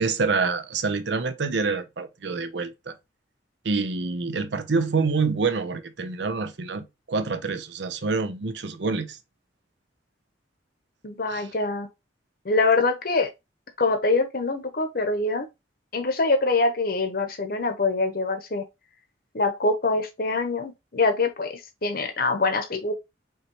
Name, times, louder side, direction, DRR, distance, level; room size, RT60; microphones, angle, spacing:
voice 1, 0.0-2.9 3.6-9.2 11.3-11.5, right 4 dB, 70° right, 0.7 m, -27 dB
voice 2, 11.0-11.9 12.4-13.3 13.8-15.5 15.9-18.6 19.3-22.9, left 3 dB, 50° left, 0.9 m, -24 dB
5.5 x 3.0 x 3.1 m
head